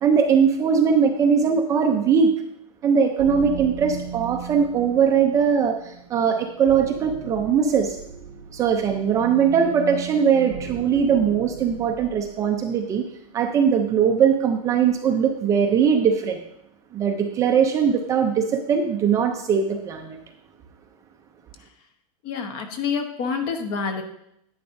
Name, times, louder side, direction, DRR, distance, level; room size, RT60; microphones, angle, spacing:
voice 1, 0.0-2.3 2.8-8.0 8.5-13.0 13.3-16.4 16.9-20.2, right 7 dB, 15° right, 4 dB, 0.5 m, -20 dB
sound 1, 3.2-12.4, right 8 dB, 50° right, 0.7 m, -37 dB
voice 2, 22.2-24.0, left 5 dB, 40° left, 6 dB, 1.1 m, -27 dB
10.5 x 9.5 x 2.6 m, 0.75 s
supercardioid pair, 165°, 19 cm